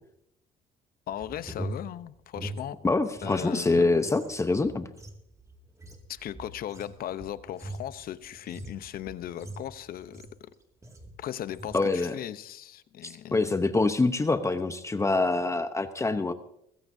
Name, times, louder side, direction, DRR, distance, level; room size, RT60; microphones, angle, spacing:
voice 1, 1.1-2.8 3.2-3.9 6.1-10.5 11.2-13.6, left 11 dB, 60° left, 13 dB, 0.8 m, -38 dB
sound 1, 1.1-3.5 3.8-10.5 10.8-11.2 11.5-11.8, right 1 dB, 20° right, 2.2 m, -42 dB
voice 2, 2.8-4.9 11.7-12.1 13.0-16.3, left 3 dB, 15° left, 9 dB, 0.9 m, -25 dB
21.5 x 15.5 x 2.7 m, 0.73 s
cardioid pair, 110°, 17 cm